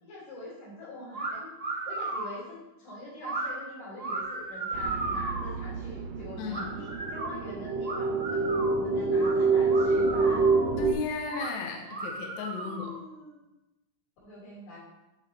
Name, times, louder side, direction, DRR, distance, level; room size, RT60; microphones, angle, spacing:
voice 1, 0.0-1.5 1.9-10.4 12.6-13.4 14.2-14.8, left 1 dB, 90° left, -7 dB, 4.2 m, -44 dB
sound 1, 1.1-1.3 1.6-2.3 3.2-3.5 4.0-5.5 6.5-7.3 7.8-8.8 9.2-9.3 9.7-10.7 11.3-11.5 11.9-13.0, right 3 dB, 30° right, 2.7 m, -35 dB
sound 2, 4.7-10.9, right 3 dB, 75° right, 1.6 m, -27 dB
voice 2, 6.4-6.7 10.8-12.9, left 5 dB, 75° left, 1 dB, 2.0 m, -35 dB
10.5 x 4.0 x 3.3 m, 0.99 s
omnidirectional pair, 3.7 m